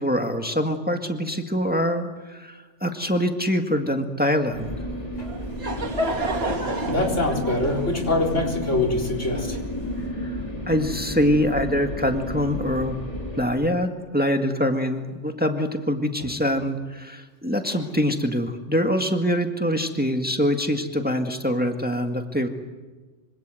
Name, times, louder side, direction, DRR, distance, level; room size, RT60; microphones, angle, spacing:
voice 1, 0.0-4.7 10.2-13.0 13.4-22.5, equal, 10° right, 5 dB, 1.8 m, -24 dB
sound 1, 4.5-13.4, left 1 dB, 25° left, 4.5 m, -32 dB
Laughter / Crowd, 5.2-9.9, right 1 dB, 55° right, 2.6 m, -30 dB
voice 2, 6.9-9.6, left 2 dB, 80° left, 0 dB, 4.7 m, -24 dB
26.0 x 25.0 x 7.8 m, 1.3 s
omnidirectional pair, 1.2 m